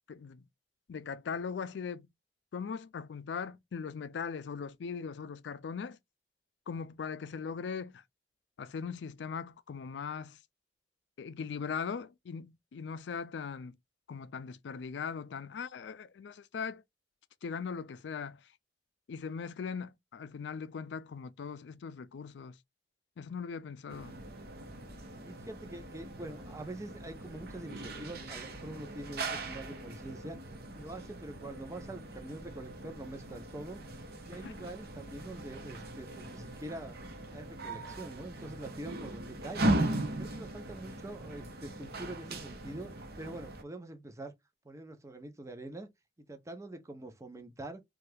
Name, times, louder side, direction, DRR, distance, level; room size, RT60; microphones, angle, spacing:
voice 1, 0.1-0.4 0.9-2.1 2.5-6.0 6.7-8.0 8.6-10.4 11.2-13.8 14.1-16.8 17.4-18.4 19.1-22.6 23.2-24.1 34.3-34.5, left 6 dB, 80° left, 0.4 m, -40 dB
sound 1, 23.9-43.6, right 1 dB, 60° right, 0.8 m, -39 dB
voice 2, 25.2-30.4 30.7-33.8 34.2-37.0 37.3-39.7 40.2-44.3 44.6-45.9 46.3-47.8, right 1 dB, 15° right, 0.6 m, -45 dB
2.7 x 2.3 x 3.3 m
head